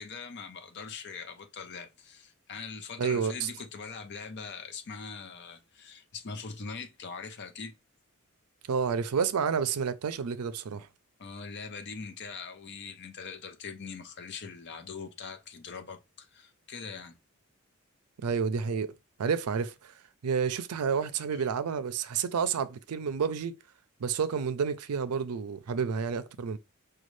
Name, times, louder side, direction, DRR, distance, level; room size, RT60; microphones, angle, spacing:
voice 1, 0.0-7.7 11.2-17.2 21.3-21.5, left 5 dB, 50° left, 0.6 m, -42 dB
voice 2, 3.0-3.5 8.7-10.9 18.2-18.9 19.2-19.9 20.2-23.6 24.0-26.6, right 6 dB, 85° right, 0.4 m, -30 dB
5.2 x 2.3 x 3.1 m
head